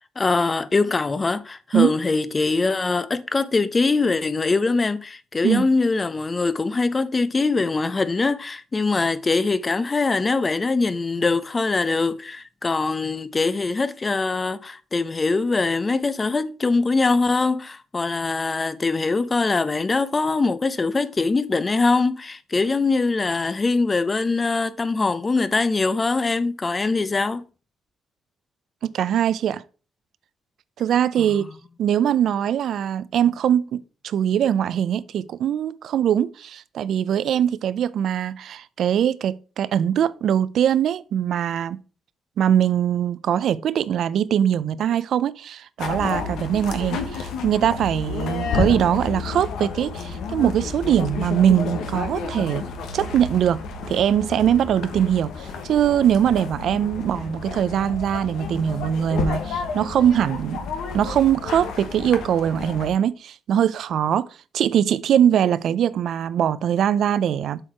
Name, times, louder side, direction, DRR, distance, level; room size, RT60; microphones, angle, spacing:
voice 1, 0.2-27.4 31.2-31.3, left 3 dB, 30° left, 0.6 m, -22 dB
voice 2, 28.8-29.6 30.8-31.4 31.8-41.8 42.4-52.6 52.9-53.6 53.9-60.6 60.9-64.3 64.5-67.6, right 9 dB, 70° right, 0.5 m, -22 dB
sound 1, 45.8-62.9, left 5 dB, 80° left, 1.1 m, -31 dB
7.6 x 4.7 x 4.5 m
cardioid pair, 90°, 0 cm